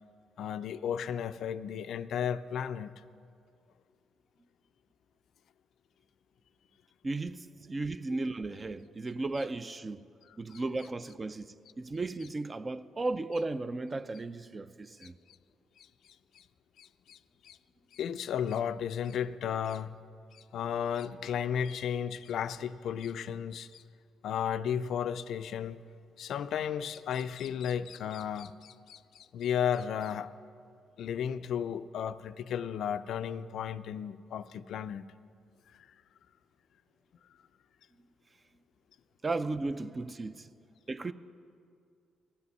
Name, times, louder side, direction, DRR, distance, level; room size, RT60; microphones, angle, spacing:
voice 1, 0.4-3.0 10.3-10.6 15.0-15.1 15.8-15.9 16.3-16.4 16.8-17.6 17.9-20.0 20.3-23.8 24.2-25.8 26.2-30.3 31.0-35.1 35.7-35.9, left 8 dB, 70° left, 0.3 m, -34 dB
voice 2, 7.0-10.0 10.4-11.5 11.8-15.1 39.2-40.5 40.9-41.1, right 2 dB, 30° right, 0.4 m, -35 dB
15.5 x 8.3 x 5.4 m
cardioid pair, 90°, 0 cm